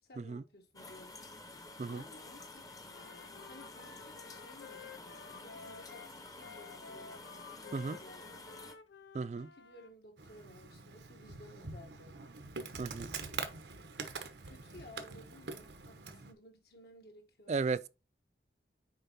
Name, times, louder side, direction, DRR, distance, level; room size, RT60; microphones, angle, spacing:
voice 1, 0.0-1.2 1.9-2.7 3.5-8.6 9.4-12.2 13.2-13.5 14.4-17.6, left 1 dB, 65° left, 1.6 m, -57 dB
sound 1, 0.7-8.7, left 2 dB, 20° left, 0.8 m, -50 dB
Wind instrument woodwind instrument, 2.9-9.9, left 6 dB, 85° left, 0.6 m, -53 dB
voice 2, 9.1-9.5 12.8-13.1 17.5-17.9, right 4 dB, 40° right, 0.3 m, -35 dB
Insect, 10.2-16.3, right 4 dB, 85° right, 1.0 m, -44 dB
6.7 x 4.7 x 4.1 m
head